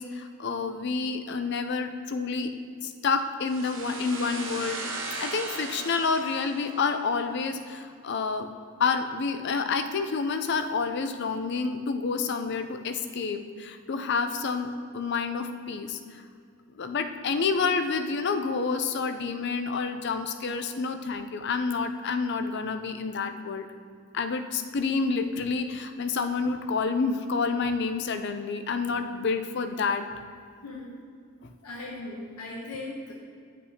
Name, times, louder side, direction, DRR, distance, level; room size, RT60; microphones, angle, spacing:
voice 1, 0.0-2.5 2.8-4.8 5.2-8.5 8.8-16.2 16.8-23.7 24.1-30.0, left 4 dB, 50° left, 8 dB, 0.5 m, -29 dB
sound 1, 3.5-7.2, right 3 dB, 60° right, 0.9 m, -37 dB
voice 2, 30.6-30.9 31.6-33.1, left 2 dB, 90° left, -2 dB, 1.0 m, -38 dB
9.4 x 8.2 x 2.8 m, 2.2 s
head